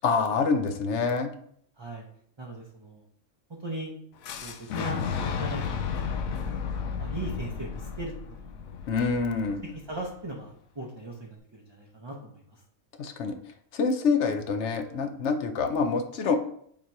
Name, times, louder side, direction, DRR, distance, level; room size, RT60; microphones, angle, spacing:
voice 1, 0.0-1.3 8.9-9.6 13.0-13.4 13.7-16.4, left 4 dB, 65° left, 7 dB, 0.9 m, -26 dB
voice 2, 2.4-3.0 3.6-3.9 4.4-6.3 7.0-8.4 9.7-12.6, right 2 dB, 30° right, -1 dB, 0.6 m, -39 dB
Fire / Explosion, 4.2-10.1, left 6 dB, 90° left, 1.0 m, -33 dB
7.3 x 2.9 x 4.6 m, 0.65 s
omnidirectional pair, 1.4 m